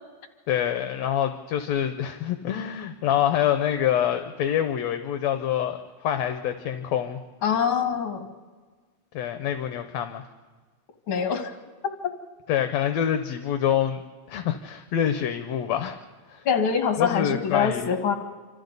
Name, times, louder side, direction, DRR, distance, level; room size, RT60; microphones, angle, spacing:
voice 1, 0.5-7.2 9.1-10.2 12.5-14.0 14.3-16.0 16.3-16.4 17.0-18.0, left 10 dB, 70° left, 7 dB, 1.9 m, -26 dB
voice 2, 7.4-8.3 11.1-11.5 16.4-18.1, left 6 dB, 45° left, 5 dB, 2.4 m, -24 dB
27.5 x 26.0 x 4.0 m, 1.4 s
omnidirectional pair, 3.5 m